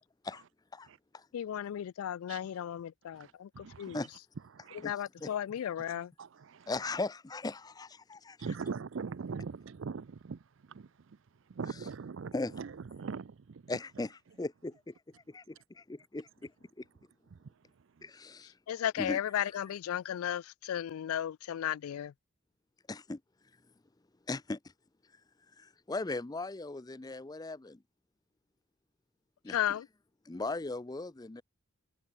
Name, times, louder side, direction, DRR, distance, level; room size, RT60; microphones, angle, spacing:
voice 1, 1.3-4.0 4.8-6.1 18.7-22.1 29.5-29.9, left 10 dB, 80° left, 0.3 m, -35 dB
voice 2, 3.1-4.0 4.5-4.8 5.8-6.7 8.4-10.4 10.7-11.2 11.5-13.8 17.3-17.5 18.0-18.1, right 5 dB, 60° right, 0.4 m, -42 dB
voice 3, 4.8-5.3 6.7-8.4 12.3-12.5 13.7-14.9 15.3-16.5 16.8-16.9 18.0-18.5 19.0-19.6 22.9-23.2 24.3-24.6 25.6-27.8 29.4-29.8 30.3-31.4, left 2 dB, 20° left, 0.5 m, -38 dB
head